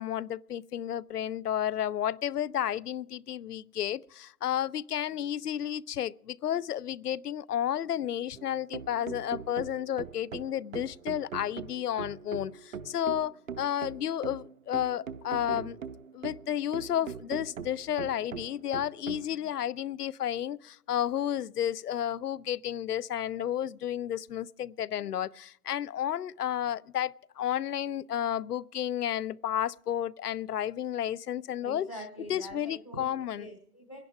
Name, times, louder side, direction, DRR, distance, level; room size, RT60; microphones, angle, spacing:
voice 1, 0.0-15.8 16.1-31.9 32.3-33.5, left 10 dB, 80° left, 0.6 m, -32 dB
sound 1, 8.4-19.3, right 7 dB, 60° right, 0.6 m, -41 dB
voice 2, 31.6-34.0, equal, 20° left, 0.6 m, -44 dB
25.0 x 10.5 x 3.5 m
hypercardioid pair, 175°, 46 cm